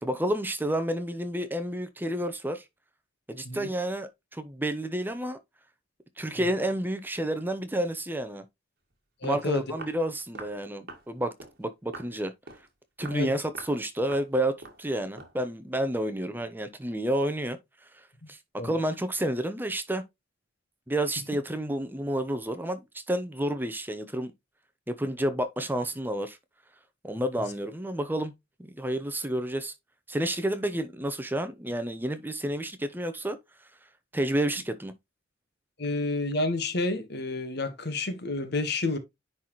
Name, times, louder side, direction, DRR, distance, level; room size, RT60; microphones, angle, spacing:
voice 1, 0.0-2.6 3.3-5.4 6.2-8.4 9.2-11.3 11.6-12.3 13.0-17.6 18.3-20.0 20.9-24.3 24.9-26.4 27.0-28.3 28.6-29.7 30.1-33.4 34.1-34.9, right 1 dB, 10° right, 0.8 m, -30 dB
Walk footsteps, 8.9-9.0 9.2-9.4 9.8-10.0 10.3-10.6 10.9-11.1 11.4-11.6 11.9-12.1 12.5-12.7 13.0-13.2 13.5-13.8 14.1-14.3 14.6-14.8 15.2-15.4, right 3 dB, 55° right, 1.9 m, -44 dB
voice 2, 9.2-9.6 13.1-13.3 18.2-18.3 18.6-18.7 35.8-39.0, left 2 dB, 55° left, 1.5 m, -30 dB
10.0 x 4.1 x 3.1 m
head